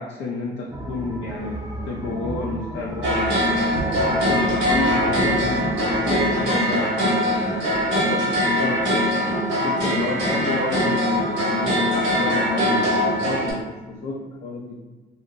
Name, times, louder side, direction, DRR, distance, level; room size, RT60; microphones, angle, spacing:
voice 1, 0.0-3.6 4.1-7.7 7.9-9.1 9.6-14.8, left 3 dB, 65° left, -3 dB, 0.5 m, -31 dB
sound 1, 0.7-6.5, right 1 dB, 20° right, 0.4 m, -33 dB
sound 2, 3.0-13.5, equal, 80° right, 1.2 m, -22 dB
2.8 x 2.6 x 2.5 m, 1.2 s
cardioid pair, 90°, 20 cm